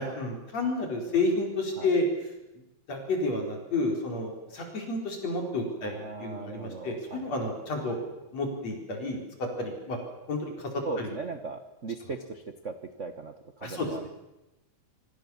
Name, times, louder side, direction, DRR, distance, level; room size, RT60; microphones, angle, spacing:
voice 1, 0.0-2.1 2.9-8.0 8.3-9.2 9.6-10.0 10.3-10.7 11.0-11.1 13.6-13.9, left 2 dB, 60° left, 2 dB, 5.8 m, -30 dB
voice 2, 5.8-7.3 10.8-14.1, right 4 dB, 70° right, 9 dB, 0.7 m, -38 dB
26.5 x 23.5 x 7.3 m, 0.99 s
omnidirectional pair, 3.4 m